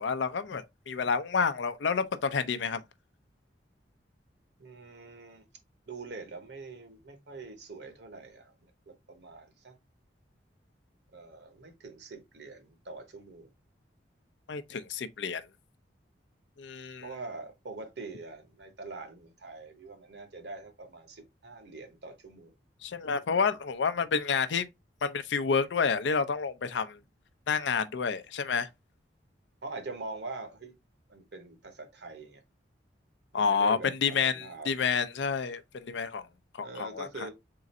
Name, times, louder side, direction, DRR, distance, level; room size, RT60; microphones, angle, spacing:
voice 1, 0.0-2.8 14.5-15.4 16.6-17.1 22.8-24.7 25.0-27.0 27.5-28.7 33.3-36.3 36.6-37.1, left 5 dB, 80° left, 0.5 m, -29 dB
voice 2, 4.6-5.4 5.9-8.5 8.9-9.8 11.1-13.5 17.0-22.5 29.6-30.7 31.1-32.4 33.3-34.7 36.6-37.3, right 3 dB, 65° right, 1.0 m, -44 dB
3.8 x 2.5 x 4.1 m
head